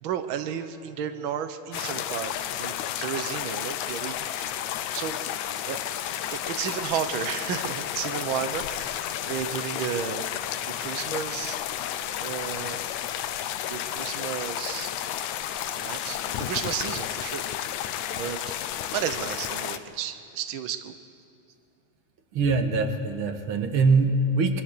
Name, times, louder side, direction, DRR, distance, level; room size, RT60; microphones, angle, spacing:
voice 1, 0.0-4.6 4.9-5.2 5.6-5.8 6.3-10.3 10.6-11.6 12.2-12.8 13.7-14.9 15.7-17.4 18.1-18.5 18.9-20.9, right 9 dB, 85° right, 9 dB, 1.1 m, -33 dB
sound 1, 1.7-19.8, left 11 dB, 75° left, 2.1 m, -32 dB
voice 2, 22.3-24.6, right 3 dB, 50° right, 6 dB, 2.0 m, -23 dB
28.0 x 22.0 x 6.7 m, 2.5 s
omnidirectional pair, 3.6 m